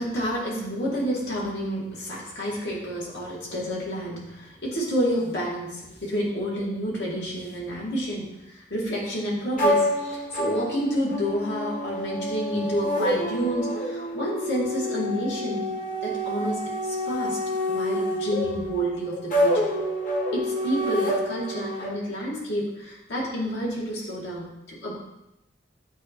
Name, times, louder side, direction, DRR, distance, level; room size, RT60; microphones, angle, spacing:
voice 1, 0.0-15.6 16.0-17.4 17.7-19.7 20.3-24.9, equal, 80° left, -5 dB, 2.0 m, -29 dB
sound 1, 9.6-21.9, equal, 50° left, 1.1 m, -28 dB
8.3 x 2.8 x 4.4 m, 0.90 s
head